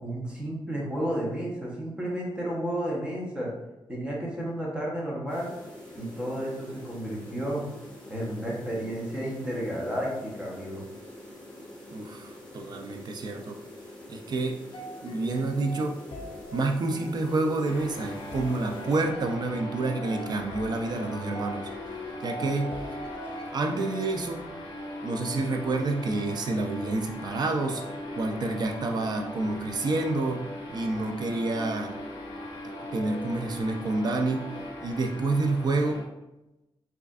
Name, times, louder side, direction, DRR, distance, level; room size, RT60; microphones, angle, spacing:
voice 1, 0.0-3.5 3.9-5.5 5.9-7.7 8.1-10.8, right 1 dB, 10° right, -4 dB, 0.9 m, -32 dB
sound 1, 5.3-19.0, left 1 dB, 10° left, 1.1 m, -46 dB
voice 2, 11.9-13.6 14.1-14.6 15.0-16.0 16.5-21.7 22.2-22.9 23.5-24.5 25.0-30.4 30.7-31.9 32.6-34.5 34.8-36.1, right 2 dB, 50° right, 3 dB, 0.4 m, -28 dB
sound 2, 14.7-24.0, equal, 75° left, 0.6 m, -43 dB
sound 3, 17.7-36.0, left 1 dB, 60° left, 1.1 m, -39 dB
4.8 x 2.4 x 2.4 m, 0.98 s
wide cardioid pair, 160°, 9 cm